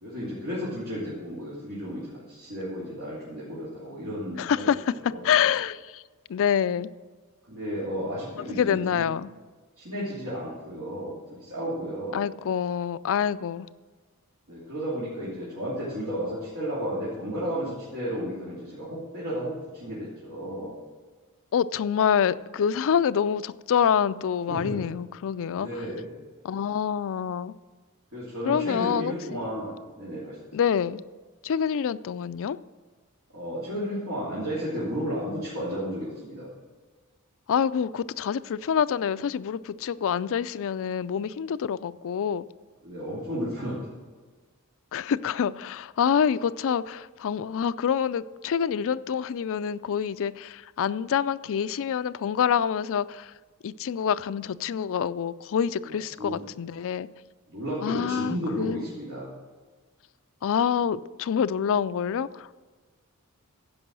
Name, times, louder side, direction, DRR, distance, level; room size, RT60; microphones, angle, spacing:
voice 1, 0.0-5.4 7.5-9.0 9.8-12.3 14.5-20.7 24.5-24.9 25.5-26.1 28.1-30.4 33.3-36.5 42.8-43.8 55.9-56.5 57.5-59.3, equal, 65° right, -9 dB, 3.0 m, -33 dB
voice 2, 4.4-6.0 6.3-6.9 8.4-9.3 12.1-13.7 21.5-25.7 26.4-27.5 28.5-29.5 30.5-31.0 31.4-32.6 37.5-42.5 44.9-53.3 53.6-57.1 57.8-58.9 60.4-62.5, left 8 dB, 65° left, 15 dB, 0.4 m, -26 dB
15.0 x 5.5 x 6.2 m, 1.4 s
head